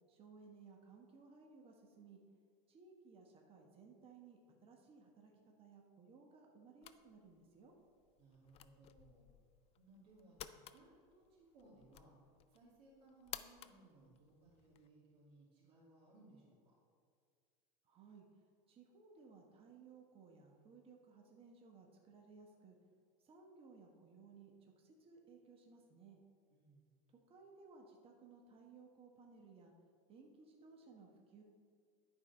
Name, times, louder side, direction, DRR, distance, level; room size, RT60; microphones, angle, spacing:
voice 1, 0.1-2.2 2.7-5.3 5.6-7.7 17.8-18.3 18.7-22.8 23.2-26.2 27.3-29.7 30.1-31.4, right 4 dB, 25° right, 1 dB, 1.1 m, -60 dB
sound 1, 6.8-14.9, left 12 dB, 30° left, 0.3 m, -56 dB
voice 2, 8.2-9.3 9.8-12.1 12.5-16.7 26.5-26.9, right 2 dB, 80° right, -6 dB, 2.4 m, -65 dB
11.0 x 4.8 x 5.4 m, 2.1 s
supercardioid pair, 135°, 21 cm